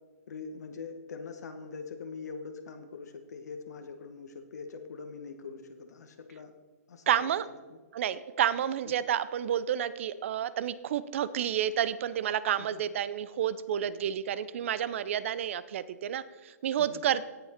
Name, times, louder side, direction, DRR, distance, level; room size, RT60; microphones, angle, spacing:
voice 1, 0.3-6.5 6.9-7.5 12.6-12.7 16.8-17.1, left 5 dB, 80° left, 6 dB, 1.2 m, -43 dB
voice 2, 7.1-7.4 7.9-17.3, right 10 dB, 50° right, 16 dB, 0.5 m, -30 dB
17.0 x 5.9 x 4.3 m, 1.3 s
hypercardioid pair, 155°, 9 cm